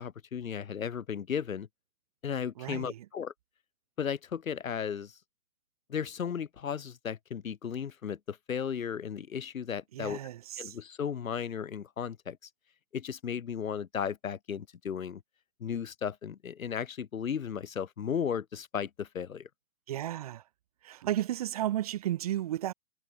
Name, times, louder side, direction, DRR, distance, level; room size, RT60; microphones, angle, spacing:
voice 1, 0.0-1.7 2.2-3.3 4.0-5.2 5.9-10.2 10.6-12.4 12.9-15.2 15.6-19.5, left 7 dB, 60° left, 2.1 m, -35 dB
voice 2, 2.6-3.1 9.9-10.8 19.9-20.4 20.8-22.7, right 13 dB, 25° right, 1.7 m, -33 dB
hypercardioid pair, 170°, 45 cm